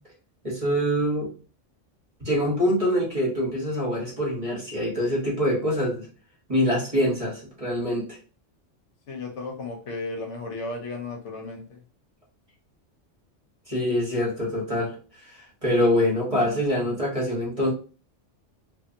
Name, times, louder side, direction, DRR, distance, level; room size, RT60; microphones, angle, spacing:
voice 1, 0.4-1.3 2.2-6.1 6.5-8.2 13.7-14.9 15.6-17.7, equal, 30° right, -4 dB, 1.0 m, -24 dB
voice 2, 9.1-11.8, left 3 dB, 70° left, 2 dB, 1.0 m, -34 dB
2.7 x 2.4 x 2.6 m, 0.36 s
omnidirectional pair, 1.3 m